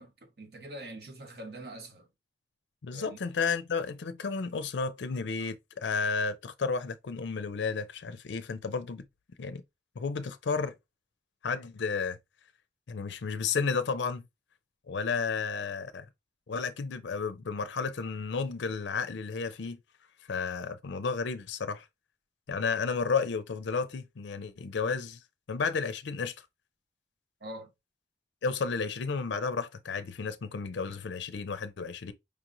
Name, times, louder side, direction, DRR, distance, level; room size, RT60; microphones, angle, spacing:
voice 1, 0.0-2.1 2.9-3.2 27.4-27.7, right 1 dB, 55° right, 0.9 m, -44 dB
voice 2, 2.8-9.0 9.4-9.6 10.0-10.7 11.4-12.2 12.9-14.2 14.9-16.0 16.5-19.8 20.3-21.9 22.5-25.2 25.5-26.3 28.4-32.1, left 5 dB, 75° left, 0.5 m, -32 dB
5.0 x 3.0 x 2.5 m
head